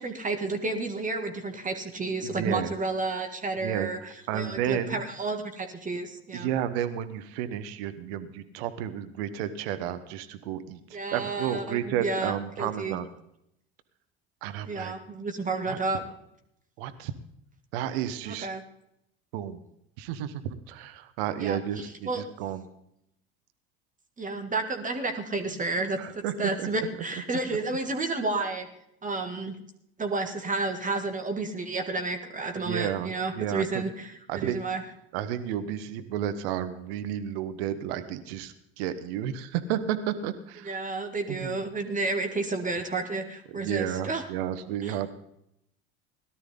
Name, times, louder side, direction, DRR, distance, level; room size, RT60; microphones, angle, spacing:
voice 1, 0.0-4.0 4.3-6.5 10.9-13.0 14.6-16.0 18.3-18.6 21.4-21.6 22.1-22.2 24.2-28.7 29.0-29.6 30.0-34.8 40.7-44.2 44.8-44.9, right 3 dB, 25° right, 5 dB, 2.2 m, -31 dB
voice 2, 2.2-2.7 3.6-5.0 6.3-13.1 14.4-14.9 15.7-15.8 16.8-17.1 17.7-18.5 19.3-19.6 20.0-22.6 26.0-26.7 27.3-27.4 32.5-33.8 34.3-34.6 35.1-40.8 41.3-41.6 43.5-45.1, right 10 dB, 70° right, 11 dB, 1.2 m, -32 dB
18.0 x 12.5 x 3.8 m, 0.77 s
hypercardioid pair, 75°, 32 cm